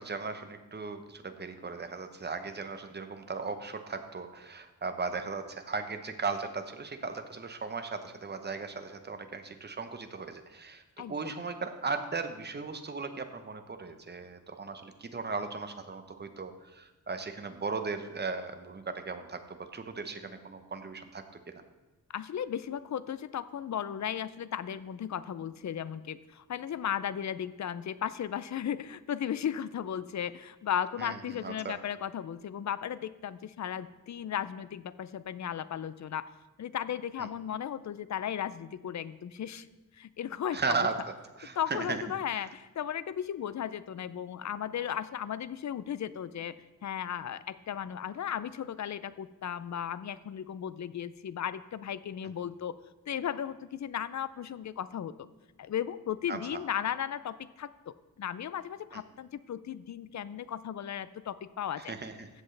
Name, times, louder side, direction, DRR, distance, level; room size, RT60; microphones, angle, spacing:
voice 1, 0.0-10.8 11.1-21.6 31.0-31.8 37.2-37.3 40.5-40.9 41.4-42.0 56.3-56.6 58.9-59.0 61.8-62.3, right 4 dB, 30° right, 8 dB, 0.8 m, -37 dB
voice 2, 11.0-11.4 22.1-36.3 36.6-39.7 39.9-40.9 41.6-46.6 46.8-52.8 53.1-55.3 55.6-61.9, left 9 dB, 55° left, 15 dB, 0.5 m, -35 dB
14.0 x 7.9 x 3.3 m, 1.2 s
wide cardioid pair, 120°, 34 cm